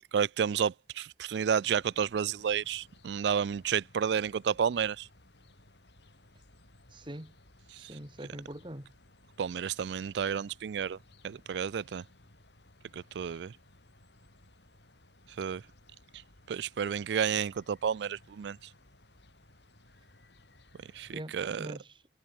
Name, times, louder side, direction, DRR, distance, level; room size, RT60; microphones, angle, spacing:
voice 1, 0.1-5.1 7.7-7.9 9.4-11.0 11.2-12.0 12.9-13.5 15.4-15.6 16.5-18.6 20.9-21.7, right 7 dB, 75° right, 0.4 m, -31 dB
sound 1, 1.4-21.2, left 1 dB, 75° left, 5.1 m, -60 dB
voice 2, 6.9-7.3 7.8-8.9 21.1-21.9, right 1 dB, 25° right, 2.4 m, -43 dB
head